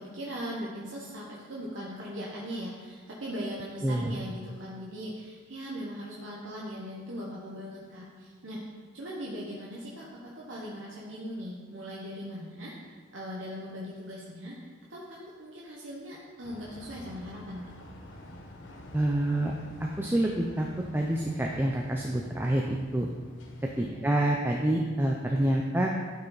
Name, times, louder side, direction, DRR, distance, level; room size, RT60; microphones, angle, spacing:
voice 1, 0.0-8.6 8.9-17.7 23.8-24.1, equal, 80° right, -5 dB, 1.3 m, -39 dB
sound 1, 16.4-23.9, left 1 dB, 80° left, 1.2 m, -48 dB
voice 2, 18.9-19.5 19.8-20.7 20.9-23.1 23.8-25.9, right 1 dB, 10° right, 0 dB, 0.5 m, -27 dB
12.5 x 5.6 x 4.0 m, 1.5 s
head